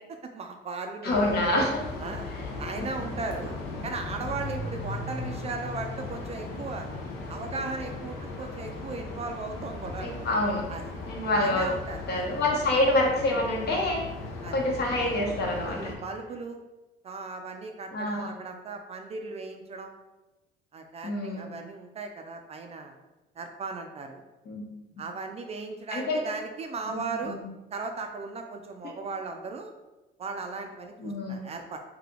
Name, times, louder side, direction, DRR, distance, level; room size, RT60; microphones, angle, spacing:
voice 1, 0.3-1.4 2.0-2.3 2.6-3.6 3.8-6.9 7.3-10.2 10.7-10.9 11.4-12.4 14.4-14.6 15.6-16.6 17.0-19.9 20.7-22.9 23.4-24.2 25.0-27.4 27.7-29.7 30.2-31.8, right 4 dB, 30° right, 5 dB, 0.4 m, -37 dB
voice 2, 1.0-1.7 2.8-2.9 10.0-10.6 11.1-11.7 12.1-14.1 14.5-15.9 17.9-18.3 21.0-21.5 24.5-24.6 25.9-26.2 26.9-27.4 31.0-31.4, left 1 dB, 55° left, -1 dB, 1.0 m, -27 dB
sound 1, 1.1-16.0, left 2 dB, 80° left, 0.9 m, -37 dB
3.3 x 2.8 x 3.7 m, 1.1 s
cardioid pair, 120°, 20 cm